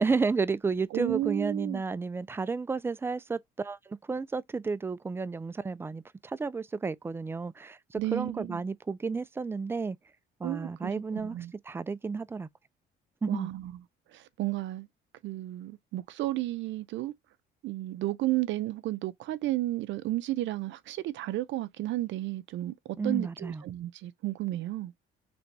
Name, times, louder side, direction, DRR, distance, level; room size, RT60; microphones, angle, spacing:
voice 1, 0.0-10.0 10.4-11.4 11.7-12.5 13.2-13.5 23.0-23.6, right 4 dB, 10° right, 0.3 m, -32 dB
voice 2, 0.9-1.8 8.0-8.6 10.4-11.5 13.3-13.8 14.1-14.9 15.2-17.1 17.6-24.9, right 16 dB, 70° right, 0.5 m, -33 dB
3.4 x 3.1 x 3.9 m
cardioid pair, 100°, 20 cm